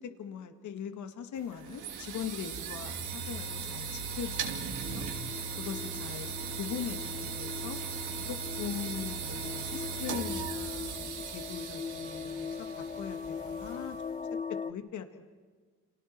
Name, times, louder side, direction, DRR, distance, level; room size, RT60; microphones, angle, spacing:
voice 1, 0.0-5.1 5.6-7.8 8.2-13.9 14.6-15.3, left 8 dB, 75° left, 7 dB, 2.1 m, -41 dB
sound 1, 1.4-14.2, right 5 dB, 80° right, 3.0 m, -38 dB
sound 2, 4.8-14.7, left 6 dB, 25° left, 1.0 m, -41 dB
30.0 x 29.0 x 4.6 m, 1.5 s
cardioid pair, 90°, 30 cm